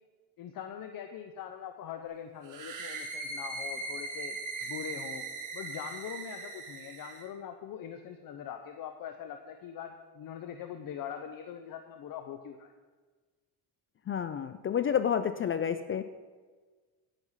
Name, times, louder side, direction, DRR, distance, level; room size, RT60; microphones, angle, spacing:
voice 1, 0.4-5.3 5.5-12.7, left 9 dB, 55° left, 6 dB, 0.8 m, -42 dB
sound 1, 2.4-7.3, right 3 dB, 50° right, 1.8 m, -39 dB
voice 2, 14.1-16.0, left 8 dB, 35° left, 11 dB, 0.4 m, -29 dB
9.7 x 9.1 x 5.7 m, 1.4 s
cardioid pair, 125°, 40 cm